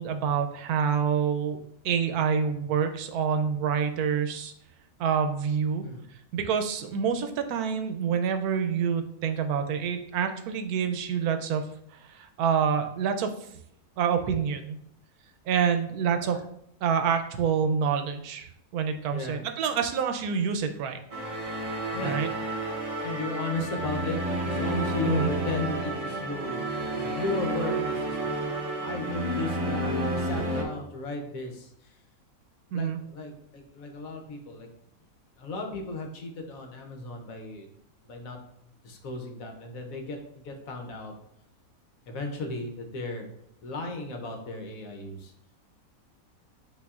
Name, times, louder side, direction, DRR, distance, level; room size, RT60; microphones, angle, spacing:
voice 1, 0.0-4.5 5.0-5.9 6.3-13.3 14.0-14.8 15.5-16.4 16.8-21.0 22.0-22.3 25.1-25.3 32.7-33.0, right 7 dB, 85° right, 7 dB, 1.1 m, -27 dB
voice 2, 19.1-19.4 21.9-22.2 23.0-24.2 24.4-28.2 28.8-31.9 32.7-34.7 35.4-37.7 38.0-38.4 38.8-41.1 42.1-43.3 43.6-45.3, left 3 dB, 70° left, 3 dB, 1.2 m, -35 dB
sound 1, 21.1-30.6, right 1 dB, 45° right, 0.4 m, -30 dB
8.1 x 2.7 x 2.4 m, 0.71 s
omnidirectional pair, 1.5 m